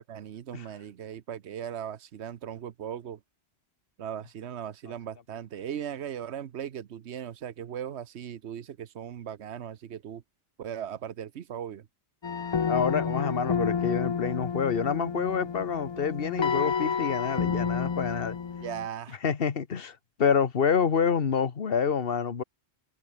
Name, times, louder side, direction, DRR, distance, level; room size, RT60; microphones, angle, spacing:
voice 1, 0.0-3.2 4.0-10.2 10.6-11.9 18.6-19.2, right 9 dB, 85° right, 1.2 m, -38 dB
sound 1, 12.2-18.9, left 6 dB, 40° left, 0.4 m, -30 dB
voice 2, 12.7-18.4 19.2-22.4, left 6 dB, 60° left, 1.5 m, -27 dB
omnidirectional pair, 1.1 m